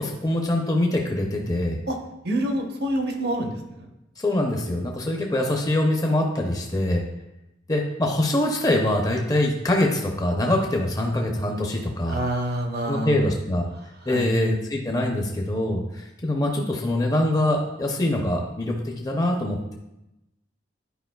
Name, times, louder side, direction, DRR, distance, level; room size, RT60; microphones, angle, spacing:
voice 1, 0.0-1.8 4.2-7.0 7.7-12.2 12.9-13.7 14.1-19.7, left 1 dB, 20° left, 0 dB, 0.6 m, -24 dB
voice 2, 2.2-3.9 12.1-13.3 14.0-14.3, right 1 dB, 55° right, 3 dB, 0.9 m, -27 dB
10.0 x 4.9 x 2.3 m, 0.91 s
head